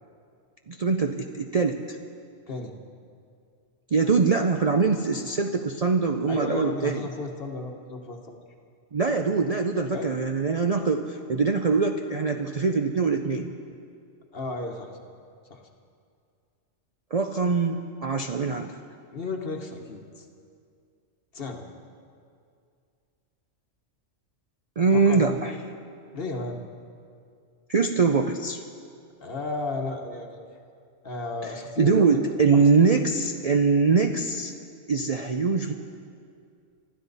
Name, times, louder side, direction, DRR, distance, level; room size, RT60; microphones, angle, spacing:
voice 1, 0.7-2.0 3.9-7.1 8.9-13.5 17.1-18.8 24.8-25.5 27.7-28.6 31.4-31.5 31.8-34.5 34.9-35.7, right 4 dB, 45° right, 5 dB, 0.5 m, -23 dB
voice 2, 6.3-8.4 9.9-10.1 14.3-14.9 15.5-15.6 19.1-20.3 21.3-21.6 24.9-25.4 26.1-26.6 29.2-30.4 31.0-32.1 32.5-32.7, left 3 dB, 50° left, 3 dB, 1.4 m, -33 dB
25.0 x 13.0 x 4.1 m, 2.3 s
omnidirectional pair, 1.3 m